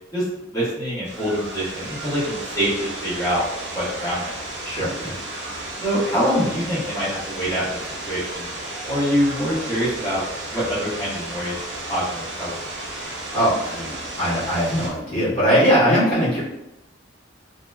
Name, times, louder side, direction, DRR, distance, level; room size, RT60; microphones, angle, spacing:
voice 1, 0.5-3.4 3.7-4.3 5.8-8.5 8.8-10.2 10.5-11.6 11.9-12.5, equal, 15° left, -13 dB, 1.2 m, -25 dB
sound 1, 1.0-14.9, right 1 dB, 60° right, 0.8 m, -33 dB
voice 2, 4.6-5.1 13.3-13.9 14.2-16.4, equal, 40° left, -11 dB, 1.5 m, -20 dB
2.9 x 2.8 x 2.2 m, 0.89 s
head